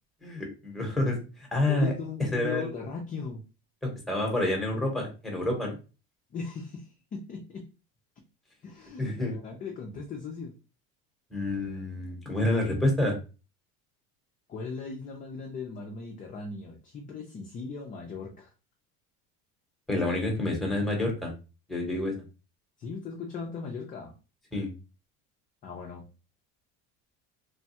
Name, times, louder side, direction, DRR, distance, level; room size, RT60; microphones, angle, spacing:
voice 1, 0.2-1.1 1.5-1.9 2.3-2.7 3.8-5.8 9.0-9.3 11.3-13.2 19.9-21.3 21.7-22.1 24.5-24.7, left 1 dB, ahead, 0 dB, 0.9 m, -28 dB
voice 2, 1.5-3.4 6.3-7.7 8.6-10.5 14.5-18.5 22.8-24.1 25.6-26.1, left 4 dB, 25° left, 0 dB, 0.4 m, -38 dB
3.1 x 2.2 x 2.7 m, 0.32 s
cardioid pair, 140°, 34 cm